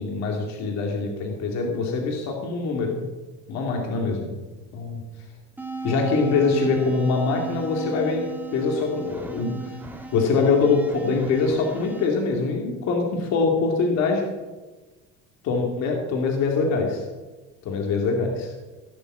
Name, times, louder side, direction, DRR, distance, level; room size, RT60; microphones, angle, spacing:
voice 1, 0.0-3.0 3.5-4.3 4.7-5.0 5.8-8.2 8.5-9.8 10.1-14.2 15.4-17.0 17.6-18.5, left 4 dB, 50° left, 1 dB, 2.3 m, -23 dB
sound 1, 5.6-12.1, right 4 dB, 5° right, 1.5 m, -35 dB
16.5 x 7.0 x 7.5 m, 1.2 s
cardioid pair, 175°, 35 cm